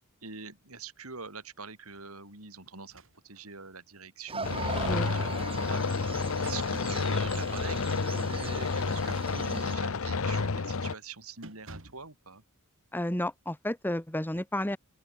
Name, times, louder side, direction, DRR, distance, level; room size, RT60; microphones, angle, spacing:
voice 1, 0.2-5.8 6.4-12.4, right 4 dB, 75° right, 5.9 m, -44 dB
sound 1, 2.8-3.5 4.0-4.1 5.5-6.9 8.9-9.8 10.3-10.5 10.8-11.1 11.4-12.1, right 2 dB, 60° right, 5.2 m, -52 dB
sound 2, 4.3-9.7, right 4 dB, 25° right, 3.9 m, -40 dB
sound 3, 4.4-10.9, left 4 dB, 65° left, 0.8 m, -30 dB
voice 2, 12.9-14.8, left 1 dB, 10° left, 1.1 m, -31 dB
open air
head